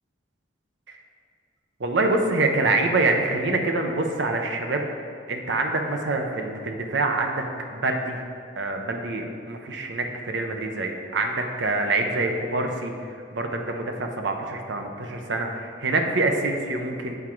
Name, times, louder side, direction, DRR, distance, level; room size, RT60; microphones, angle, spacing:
voice 1, 1.8-4.9 5.3-7.4 7.7-8.2 8.6-17.2, right 2 dB, 70° right, 4 dB, 0.6 m, -26 dB
7.9 x 3.7 x 4.5 m, 2.4 s
head